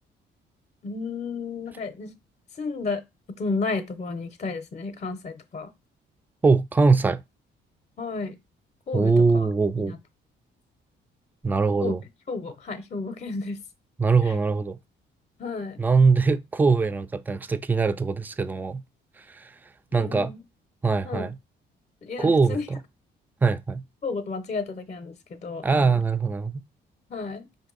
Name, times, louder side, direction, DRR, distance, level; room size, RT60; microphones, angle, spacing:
voice 1, 0.8-2.1 2.6-3.0 3.4-5.7 8.0-8.4 8.9-9.5 9.8-10.0 11.8-11.9 12.3-13.6 15.4-15.8 19.9-20.4 21.0-21.3 22.0-22.7 24.0-26.0 27.1-27.5, left 4 dB, 35° left, 0.6 m, -32 dB
voice 2, 6.4-7.2 8.9-9.9 11.4-12.0 14.0-14.8 15.8-18.8 19.3-19.5 19.9-20.3 20.8-21.4 22.2-22.8 23.4-23.8 25.6-26.6, right 4 dB, 10° right, 0.3 m, -22 dB
5.1 x 2.6 x 3.8 m
cardioid pair, 90°, 20 cm